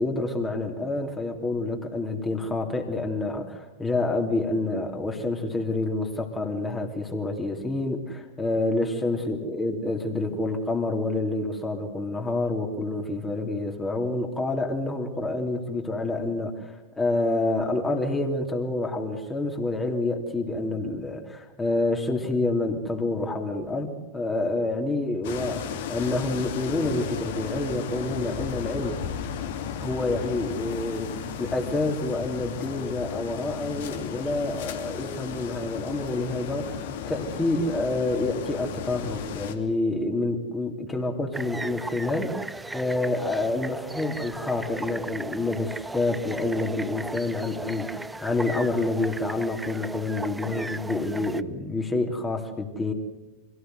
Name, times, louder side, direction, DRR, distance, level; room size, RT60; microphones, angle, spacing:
voice 1, 0.0-29.0 29.8-52.9, left 2 dB, 15° left, 2 dB, 3.0 m, -28 dB
sound 1, 25.2-39.6, left 8 dB, 55° left, 2.7 m, -34 dB
sound 2, 41.3-51.4, right 2 dB, 5° right, 0.7 m, -36 dB
25.0 x 17.5 x 8.0 m, 1.1 s
figure-of-eight pair, 90°, 0 cm